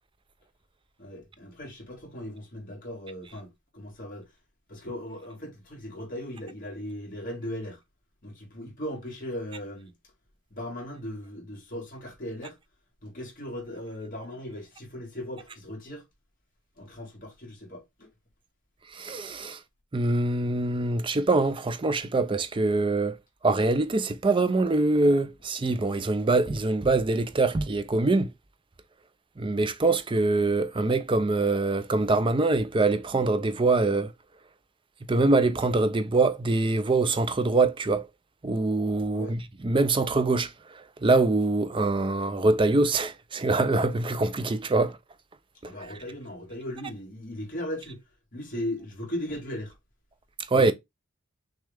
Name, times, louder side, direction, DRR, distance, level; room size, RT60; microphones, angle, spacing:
voice 1, 1.0-4.3 4.7-7.8 8.2-9.9 10.5-12.6 13.0-16.0 16.8-18.1 39.1-39.3 45.6-48.0 48.3-49.7 50.5-50.7, left 1 dB, 45° left, 1.9 m, -38 dB
voice 2, 18.9-19.6 19.9-23.2 23.4-28.3 29.4-34.1 35.1-38.1 38.4-45.0 45.6-45.7 50.5-50.7, right 3 dB, 25° right, 0.4 m, -24 dB
6.3 x 2.4 x 3.4 m
head